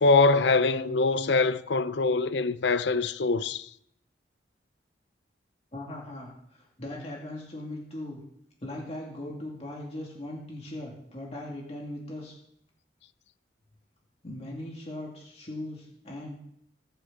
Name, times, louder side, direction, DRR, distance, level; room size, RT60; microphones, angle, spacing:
voice 1, 0.0-3.7, left 3 dB, 75° left, 0.6 m, -23 dB
voice 2, 5.7-8.2 8.6-12.3 14.2-16.4, left 1 dB, 35° left, 2.5 m, -39 dB
21.0 x 7.9 x 4.0 m
head